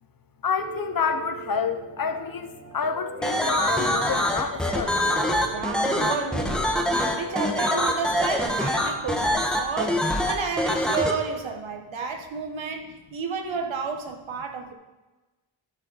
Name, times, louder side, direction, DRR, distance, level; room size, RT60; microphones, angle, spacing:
voice 1, 0.4-5.0, left 6 dB, 45° left, 8 dB, 0.7 m, -29 dB
Piano, 0.6-9.3, right 2 dB, 20° right, 1.6 m, -40 dB
sound 1, 3.2-11.1, left 1 dB, ahead, 1.1 m, -24 dB
voice 2, 5.5-14.7, right 5 dB, 70° right, 4 dB, 1.3 m, -31 dB
11.5 x 6.4 x 4.1 m, 1.1 s
wide cardioid pair, 140°, 48 cm